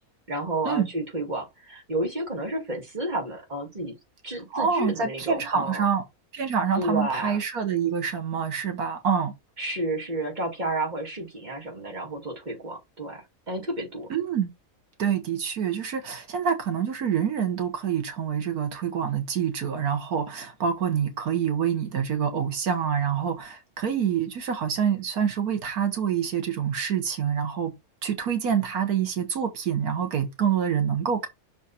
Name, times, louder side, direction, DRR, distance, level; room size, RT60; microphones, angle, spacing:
voice 1, 0.3-3.9 4.2-5.8 6.8-7.4 9.6-14.1, right 1 dB, 30° right, 2.4 m, -31 dB
voice 2, 4.5-6.0 6.3-9.3 14.1-14.5 15.0-27.7 28.0-31.3, right 7 dB, 85° right, 1.7 m, -26 dB
6.2 x 4.0 x 4.2 m
omnidirectional pair, 1.5 m